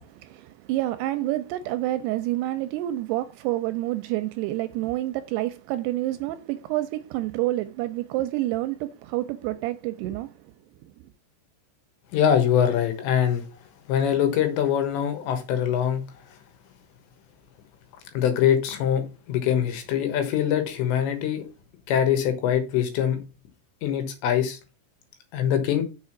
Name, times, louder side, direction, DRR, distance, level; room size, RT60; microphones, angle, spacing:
voice 1, 0.0-10.5 10.8-11.1, right 16 dB, 80° right, 2.4 m, -28 dB
voice 2, 12.1-13.5 13.9-16.0 18.1-21.4 21.9-23.2 23.8-24.6 25.3-25.8, left 9 dB, 80° left, 3.5 m, -23 dB
6.5 x 4.8 x 5.8 m
omnidirectional pair, 5.1 m